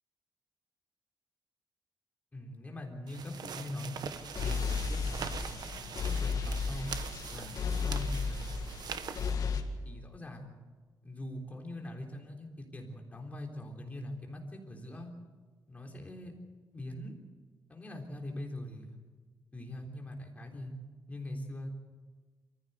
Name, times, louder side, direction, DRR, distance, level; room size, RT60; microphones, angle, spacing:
voice 1, 2.3-4.0 4.4-5.2 5.8-6.9 7.3-8.5 9.4-10.5 11.0-15.1 15.7-16.3 16.7-17.1 17.7-19.0 19.5-20.7 21.1-21.8, left 1 dB, 20° left, 1 dB, 3.6 m, -42 dB
sound 1, 3.1-9.3, right 7 dB, 70° right, 1.1 m, -43 dB
sound 2, 4.2-9.6, left 5 dB, 60° left, 2.0 m, -34 dB
25.0 x 15.0 x 8.1 m, 1.4 s
wide cardioid pair, 155°, 7 cm